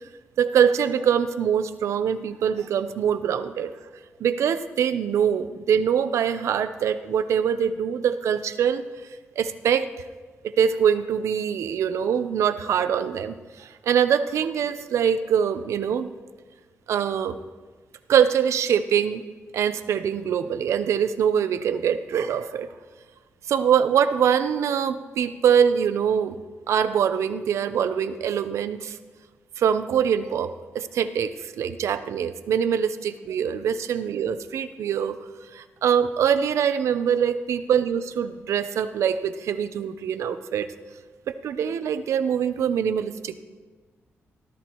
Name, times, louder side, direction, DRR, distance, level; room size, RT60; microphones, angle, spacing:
voice 1, 0.4-3.7 4.2-8.8 9.4-9.9 10.4-16.1 16.9-17.4 18.1-19.2 19.5-22.7 23.5-26.4 26.7-29.0 29.6-35.2 35.5-40.7 41.3-43.4, right 8 dB, 90° right, 11 dB, 0.7 m, -23 dB
18.0 x 13.0 x 3.0 m, 1.4 s
wide cardioid pair, 160°, 5 cm